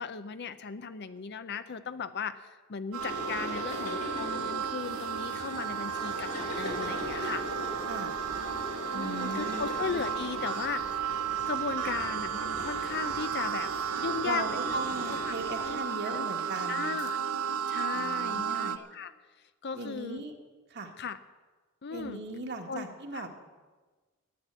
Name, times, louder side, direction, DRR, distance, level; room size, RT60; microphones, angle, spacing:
voice 1, 0.0-7.4 8.9-11.0 11.5-15.8 16.1-16.3 16.7-17.2 17.7-19.1 19.6-20.2 21.0-21.2 21.8-22.2 22.7-23.3, left 5 dB, 50° left, 11 dB, 0.6 m, -37 dB
sound 1, 2.9-18.8, right 8 dB, 85° right, 0.9 m, -33 dB
sound 2, 3.0-15.7, left 2 dB, 85° left, 3.4 m, -40 dB
voice 2, 8.9-9.7 14.2-16.9 17.9-18.7 19.7-20.3 20.7-20.9 21.9-23.3, right 2 dB, 50° right, 3 dB, 1.7 m, -38 dB
14.0 x 9.9 x 8.2 m, 1.3 s
head